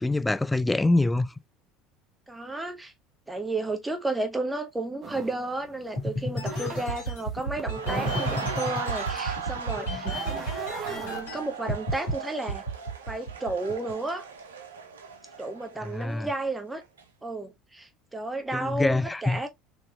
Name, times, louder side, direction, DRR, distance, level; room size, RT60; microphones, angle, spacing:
voice 1, 0.0-1.3 15.8-16.3 18.5-19.4, left 2 dB, 10° left, 0.3 m, -25 dB
voice 2, 2.3-2.9 3.3-10.1 10.9-12.6 13.1-14.3 15.4-16.8 17.2-19.5, right 2 dB, 10° right, 1.0 m, -32 dB
sound 1, 5.0-11.3, right 4 dB, 40° right, 1.1 m, -40 dB
sound 2, 6.0-11.4 11.7-12.1 12.5-13.9, right 1 dB, 75° left, 1.7 m, -32 dB
sound 3, 7.6-16.5 16.8-17.0, right 6 dB, 85° right, 0.6 m, -38 dB
4.0 x 3.0 x 2.3 m
hypercardioid pair, 70°, 0 cm